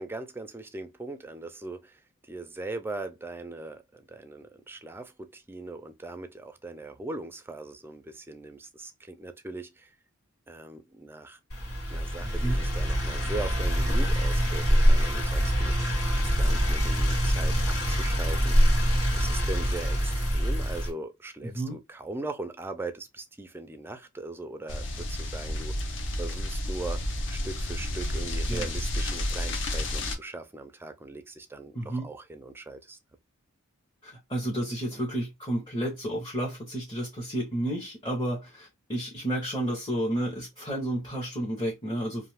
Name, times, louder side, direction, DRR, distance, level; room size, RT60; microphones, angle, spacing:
voice 1, 0.0-9.9 10.5-11.4 11.9-18.8 19.2-33.0 34.9-35.0, right 2 dB, 10° right, 0.3 m, -40 dB
sound 1, 11.5-20.9, equal, 85° left, 1.4 m, -24 dB
voice 2, 21.4-21.8 28.4-28.7 31.7-32.1 34.0-42.3, right 1 dB, 20° left, 0.8 m, -31 dB
sound 2, 24.7-30.2, left 1 dB, 60° left, 0.6 m, -31 dB
2.5 x 2.3 x 3.2 m
head